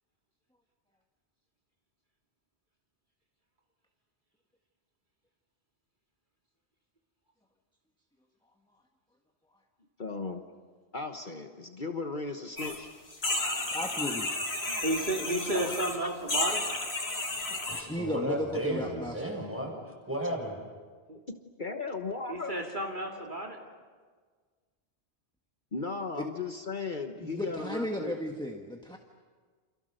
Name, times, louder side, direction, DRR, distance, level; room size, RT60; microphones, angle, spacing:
voice 1, 10.0-10.4 10.9-12.9 14.7-14.8 15.5-16.0 21.3-22.5 25.7-28.1, left 3 dB, 50° left, 5 dB, 1.4 m, -36 dB
sound 1, 12.6-12.8 13.1-16.0 16.3-17.8, left 2 dB, 70° left, 3.4 m, -32 dB
voice 2, 13.7-14.3 17.9-19.4 26.1-26.3 27.2-29.0, left 1 dB, 5° left, 2 dB, 1.6 m, -35 dB
voice 3, 14.8-16.6 18.9-19.1 21.1-21.2 22.3-23.6, right 1 dB, 45° right, 1 dB, 2.6 m, -32 dB
voice 4, 17.7-19.8 20.1-20.6, equal, 10° right, 0 dB, 6.7 m, -33 dB
29.0 x 28.0 x 6.7 m, 1.5 s
omnidirectional pair, 1.1 m